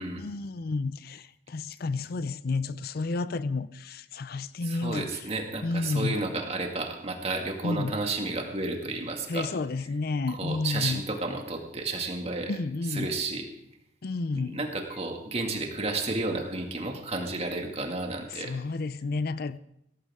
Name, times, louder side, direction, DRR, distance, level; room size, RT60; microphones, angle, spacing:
voice 1, 0.2-5.1 5.6-6.2 7.6-8.0 9.3-11.0 12.5-13.1 14.0-14.6 18.3-19.6, left 3 dB, 55° left, 0.5 m, -31 dB
voice 2, 4.6-9.5 10.3-12.5 12.9-13.5 14.3-18.5, right 2 dB, 35° right, 2.1 m, -32 dB
16.5 x 15.0 x 3.6 m
head